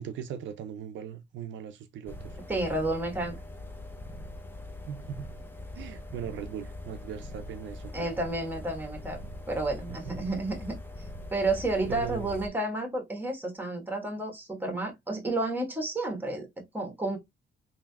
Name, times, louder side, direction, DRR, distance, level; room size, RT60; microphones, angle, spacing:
voice 1, 0.0-2.4 4.9-5.3 5.7-8.1 9.9-10.1 11.9-12.4, right 9 dB, 70° right, 0.4 m, -39 dB
sound 1, 2.0-12.5, left 1 dB, 10° left, 0.6 m, -42 dB
voice 2, 2.5-3.3 7.9-9.2 9.5-17.2, right 2 dB, 10° right, 1.2 m, -31 dB
3.2 x 2.7 x 2.3 m
cardioid pair, 90°, 20 cm